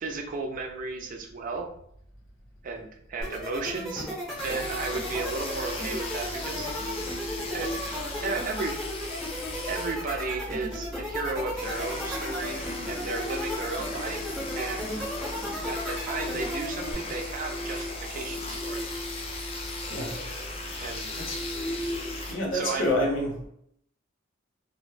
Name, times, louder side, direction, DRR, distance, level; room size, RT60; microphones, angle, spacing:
voice 1, 0.0-1.7 2.6-6.7 7.5-7.7 8.2-8.8 9.7-15.0 15.7-18.8 20.8-21.1 22.5-22.9, right 3 dB, 45° right, 3 dB, 0.4 m, -34 dB
sound 1, 3.2-16.9, equal, ahead, 0.7 m, -35 dB
sound 2, 4.4-22.3, left 1 dB, 30° left, 0.4 m, -35 dB
voice 2, 22.3-23.5, left 1 dB, 80° left, -2 dB, 0.8 m, -28 dB
2.1 x 2.0 x 3.1 m, 0.69 s
head